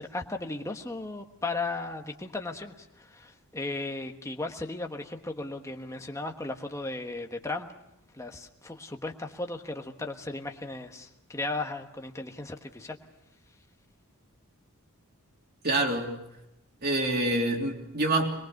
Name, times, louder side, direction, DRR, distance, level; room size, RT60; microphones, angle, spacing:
voice 1, 0.0-7.7 8.1-13.0, left 2 dB, 15° left, 4 dB, 1.2 m, -36 dB
voice 2, 15.6-16.1 16.8-18.3, right 2 dB, 45° right, 1 dB, 3.2 m, -26 dB
23.0 x 21.5 x 6.5 m, 0.88 s
head